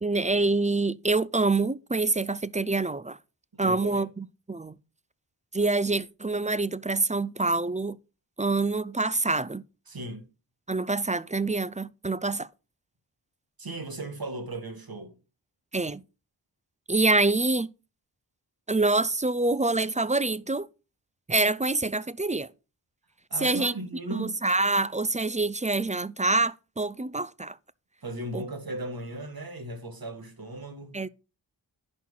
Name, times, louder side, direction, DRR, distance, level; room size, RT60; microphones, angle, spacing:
voice 1, 0.0-3.2 3.6-4.7 5.5-8.0 8.4-9.6 10.7-12.5 15.7-16.0 16.9-17.7 18.7-20.7 21.3-22.5 23.4-23.7 24.1-27.6 28.3-28.4 30.9-31.1, right 3 dB, 15° right, 0.4 m, -26 dB
voice 2, 3.6-4.1 9.9-10.3 13.6-15.1 23.3-24.3 28.0-31.0, right 2 dB, 55° right, 2.0 m, -36 dB
10.5 x 4.4 x 5.6 m
wide cardioid pair, 65°, 44 cm